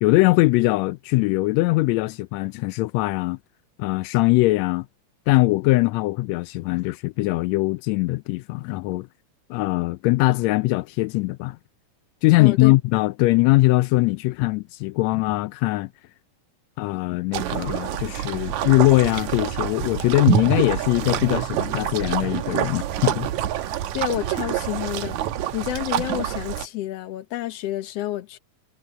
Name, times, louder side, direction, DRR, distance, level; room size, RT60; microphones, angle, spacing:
voice 1, 0.0-3.4 3.8-4.9 5.3-9.1 9.5-11.6 12.2-15.9 16.8-23.3 23.6-23.7, left 20 dB, 85° left, 1.5 m, -21 dB
voice 2, 12.4-12.7 23.9-25.2 25.5-28.4, left 14 dB, 65° left, 1.8 m, -29 dB
sound 1, 17.3-26.7, right 10 dB, 75° right, 2.2 m, -26 dB
omnidirectional pair, 3.6 m